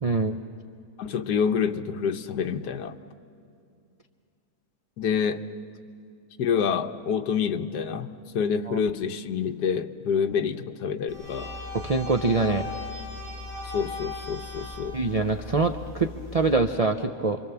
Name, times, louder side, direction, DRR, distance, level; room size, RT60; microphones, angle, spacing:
voice 1, 0.0-0.4 8.7-8.8 11.7-12.7 14.9-17.4, right 3 dB, 50° right, 6 dB, 0.4 m, -24 dB
voice 2, 1.0-2.9 5.0-5.4 6.4-11.5 13.7-15.0, left 7 dB, 80° left, 7 dB, 1.5 m, -27 dB
sound 1, 11.1-16.5, left 3 dB, 30° right, 7.8 m, -38 dB
28.0 x 24.5 x 7.0 m, 2.5 s
omnidirectional pair, 1.7 m